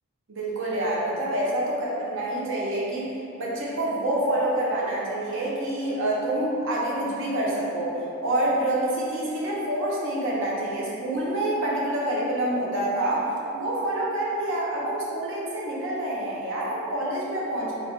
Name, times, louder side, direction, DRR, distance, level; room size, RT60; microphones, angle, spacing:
voice 1, 0.3-8.0 8.2-17.7, right 1 dB, 60° right, -5 dB, 0.6 m, -27 dB
3.2 x 2.3 x 3.6 m, 3.0 s
head